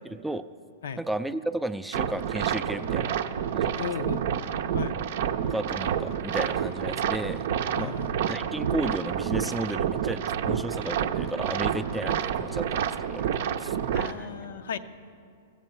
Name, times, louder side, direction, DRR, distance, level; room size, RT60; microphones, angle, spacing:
voice 1, 0.1-0.4 1.0-3.2 3.5-3.7 5.4-7.5 7.7-14.3, right 1 dB, 5° right, 10 dB, 0.3 m, -34 dB
sound 1, 1.9-14.1, right 8 dB, 65° right, 0.5 m, -29 dB
voice 2, 3.8-4.3 4.7-5.0 7.8-8.2 13.9-14.8, left 7 dB, 75° left, 11 dB, 0.5 m, -35 dB
14.5 x 7.4 x 5.5 m, 2.4 s
hypercardioid pair, 125°, 0 cm